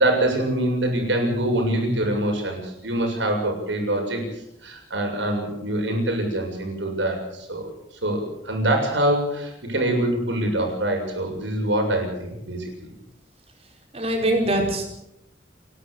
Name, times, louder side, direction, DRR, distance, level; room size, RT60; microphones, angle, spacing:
voice 1, 0.0-4.2 4.6-7.7 8.0-12.9, right 1 dB, 90° right, 2 dB, 7.1 m, -24 dB
voice 2, 13.9-14.9, right 1 dB, 35° right, 2 dB, 5.0 m, -23 dB
29.0 x 11.5 x 8.2 m, 0.83 s
head